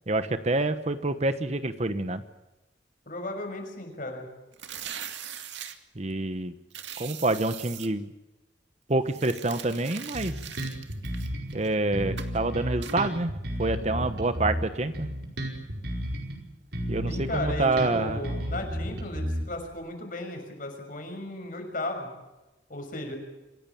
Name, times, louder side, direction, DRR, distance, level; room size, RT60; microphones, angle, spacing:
voice 1, 0.1-2.2 5.9-6.5 7.0-8.1 8.9-10.3 11.5-13.3 13.6-15.1 16.9-18.3, right 2 dB, 40° right, 11 dB, 1.2 m, -27 dB
voice 2, 3.1-4.3 17.1-22.1 22.7-23.2, left 1 dB, 50° left, 3 dB, 6.4 m, -35 dB
sound 1, 4.5-5.8 6.7-7.9 9.1-11.7 12.2-12.4 12.8-13.0, right 9 dB, 85° right, 2.2 m, -40 dB
Bass guitar, 10.1-11.6 11.9-16.4 16.7-19.7, equal, 60° right, 5.2 m, -33 dB
26.5 x 16.5 x 8.7 m, 1.0 s
head